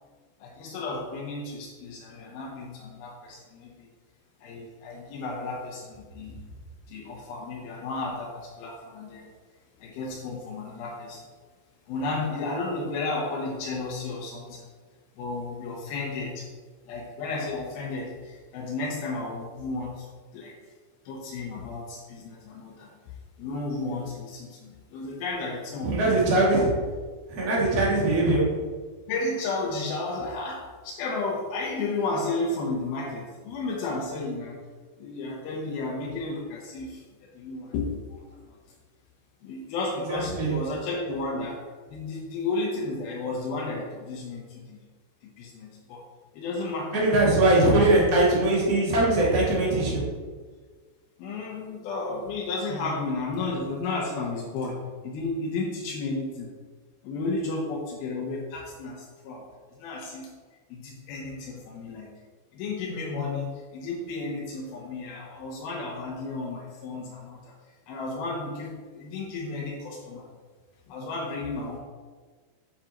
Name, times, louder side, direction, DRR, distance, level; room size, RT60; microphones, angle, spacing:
voice 1, 0.4-3.9 4.4-6.4 6.9-9.3 9.8-11.3 11.9-14.7 15.2-16.5 16.9-20.1 20.3-20.6 21.1-23.1 23.4-26.5 29.1-34.6 35.0-37.0 37.3-38.6 39.4-41.6 41.9-44.8 45.2-46.0 46.3-47.2 51.2-56.5 57.0-59.5 59.8-60.3 60.7-62.1 62.5-67.5 67.9-70.3 70.9-71.8, left 3 dB, 85° left, -2 dB, 2.1 m, -33 dB
voice 2, 25.8-26.7 27.3-28.4 40.1-40.6 46.9-50.0 52.7-52.8, right 2 dB, 80° right, -6 dB, 0.7 m, -21 dB
8.7 x 7.5 x 2.9 m, 1.5 s
omnidirectional pair, 5.6 m